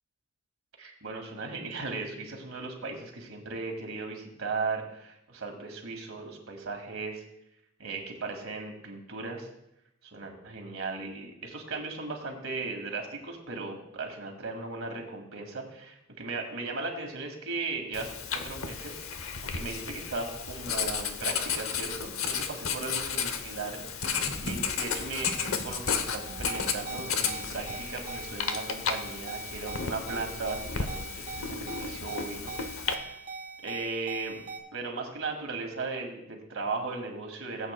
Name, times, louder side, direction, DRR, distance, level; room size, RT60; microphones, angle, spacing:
voice 1, 0.8-7.2 7.8-9.5 10.0-18.1 18.4-19.0 19.5-32.5 33.0-33.2 33.6-34.4 34.7-37.7, right 3 dB, 75° right, 2 dB, 2.0 m, -37 dB
Writing, 17.9-32.9, left 6 dB, 85° left, 0.8 m, -33 dB
sound 1, 24.0-34.6, right 3 dB, 40° right, 1.3 m, -41 dB
17.0 x 8.3 x 2.2 m, 0.82 s
head